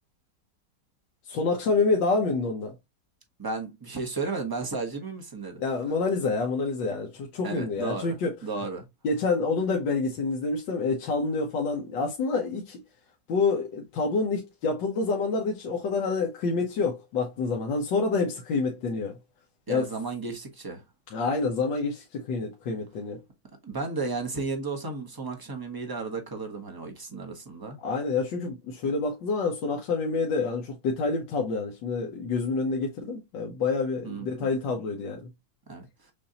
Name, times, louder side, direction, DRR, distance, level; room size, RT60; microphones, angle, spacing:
voice 1, 1.2-2.7 5.6-8.3 9.0-12.8 13.3-19.2 19.7-19.9 21.1-23.2 27.8-35.2, left 4 dB, 85° left, 1.6 m, -27 dB
voice 2, 3.4-5.6 7.4-8.2 8.4-8.9 19.7-20.8 23.6-27.8 34.0-34.5 35.7-35.9, right 3 dB, 15° right, 0.8 m, -33 dB
6.8 x 2.6 x 2.8 m
omnidirectional pair, 1.9 m